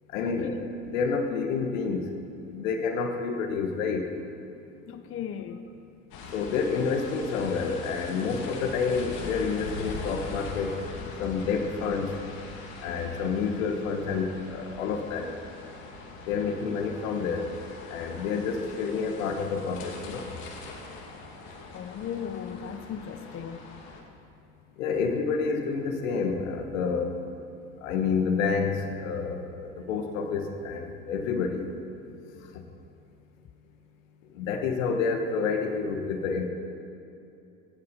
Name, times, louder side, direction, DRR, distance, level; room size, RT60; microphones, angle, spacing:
voice 1, 0.1-0.6 0.8-2.1 2.5-4.1 6.3-10.8 11.2-12.1 12.8-15.3 16.3-17.5 17.9-20.3 24.8-27.2 27.8-31.6 32.4-32.5 34.4-36.5, left 5 dB, 80° left, 5 dB, 1.4 m, -29 dB
voice 2, 4.9-5.6 21.7-23.6, left 8 dB, 35° left, 8 dB, 0.7 m, -37 dB
sound 1, 6.1-24.0, left 3 dB, 60° left, 2.1 m, -42 dB
17.0 x 6.8 x 5.4 m, 2.8 s
hypercardioid pair, 85°, 39 cm